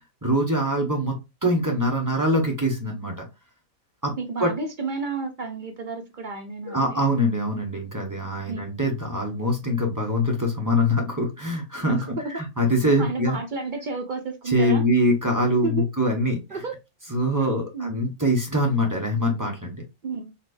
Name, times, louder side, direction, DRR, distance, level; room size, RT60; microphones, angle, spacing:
voice 1, 0.2-1.2 1.4-3.1 4.0-4.1 4.4-4.5 6.6-12.0 12.3-13.4 14.5-16.4 17.1-19.8, equal, 15° right, 0.9 m, -23 dB
voice 2, 4.2-7.0 8.5-8.8 11.9-12.4 12.8-14.8 15.6-15.9 16.5-16.8 17.4-17.9 20.0-20.3, right 4 dB, 60° right, 0.5 m, -31 dB
4.2 x 3.0 x 2.5 m
omnidirectional pair, 1.6 m